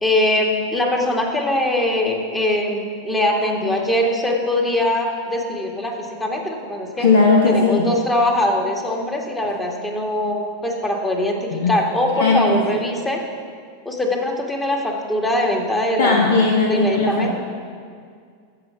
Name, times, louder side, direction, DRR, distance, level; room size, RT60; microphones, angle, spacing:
voice 1, 0.0-7.1 7.5-13.2 13.9-17.4, left 1 dB, 15° left, 1 dB, 1.9 m, -22 dB
voice 2, 7.0-7.9 11.6-11.7 12.2-12.6 16.0-17.4, left 3 dB, 70° left, 0 dB, 1.3 m, -17 dB
14.5 x 5.8 x 5.7 m, 2.1 s
hypercardioid pair, 95°, 0 cm